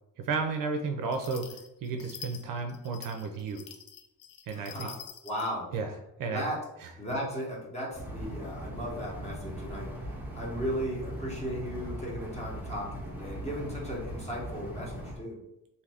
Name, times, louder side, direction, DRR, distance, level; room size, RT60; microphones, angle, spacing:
voice 1, 0.2-1.5 1.8-3.6 4.5-4.9 5.7-5.9 6.2-6.4 6.8-6.9, right 4 dB, 60° right, 5 dB, 0.5 m, -32 dB
sound 1, 1.1-5.5, left 8 dB, 50° left, 0.4 m, -47 dB
voice 2, 4.5-5.0 5.2-5.7 6.3-6.6 7.0-15.4, equal, 15° left, -4 dB, 0.9 m, -36 dB
sound 2, 7.9-15.2, right 1 dB, 5° right, 0.5 m, -40 dB
2.7 x 2.5 x 3.4 m, 0.86 s
cardioid pair, 135°, 39 cm